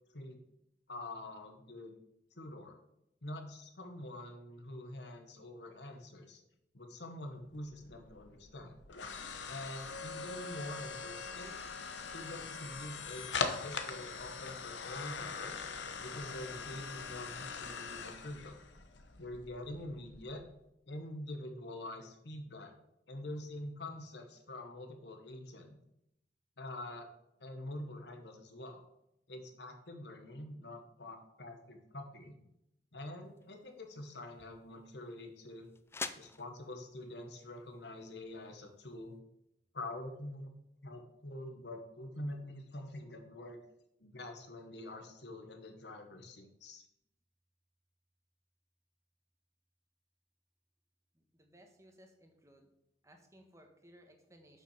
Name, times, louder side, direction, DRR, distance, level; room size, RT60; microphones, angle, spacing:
voice 1, 0.9-2.0 2.3-2.8 3.2-6.4 6.7-8.8 9.5-11.6 11.9-15.6 16.0-18.6 19.2-20.4 20.9-22.7 23.1-25.8 26.6-27.1 27.4-28.8 29.3-32.4 32.9-35.7 36.2-39.2 39.7-40.6 40.8-43.6 44.0-46.9, left 1 dB, 65° left, 5 dB, 1.4 m, -46 dB
sound 1, 7.4-20.5, left 5 dB, 85° left, 1.0 m, -42 dB
sound 2, 33.2-39.2, left 4 dB, 15° left, 0.4 m, -49 dB
voice 2, 51.1-52.7 53.0-54.6, equal, 15° right, 4 dB, 1.3 m, -61 dB
7.5 x 5.9 x 5.8 m, 0.81 s
head